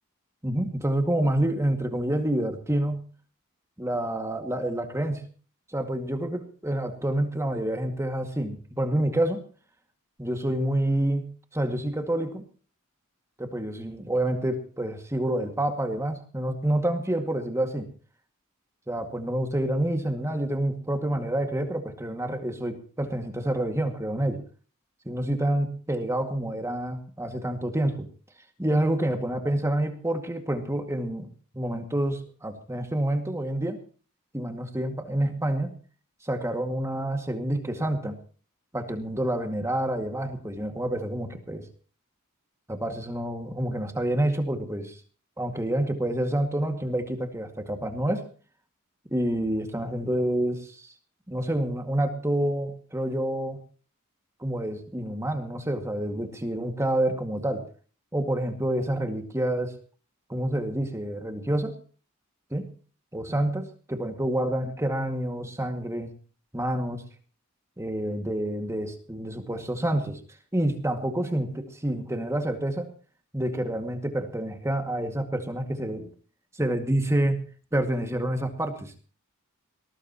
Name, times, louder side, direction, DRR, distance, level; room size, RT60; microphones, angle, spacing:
voice 1, 0.4-3.0 3.8-5.2 5.7-9.4 10.2-11.3 11.5-12.4 13.4-17.9 18.9-24.4 25.1-28.1 28.6-31.3 31.5-33.8 34.3-35.7 36.2-38.2 38.7-41.6 42.7-45.0 45.4-48.2 49.1-50.9 51.3-53.6 54.4-57.7 58.1-59.7 60.3-61.8 62.5-62.7 63.1-66.1 66.5-67.0 67.8-70.2 70.5-72.9 73.3-76.1 76.5-77.4 77.7-78.9, right 1 dB, 15° right, 5 dB, 2.1 m, -28 dB
21.0 x 20.0 x 3.0 m, 0.40 s
head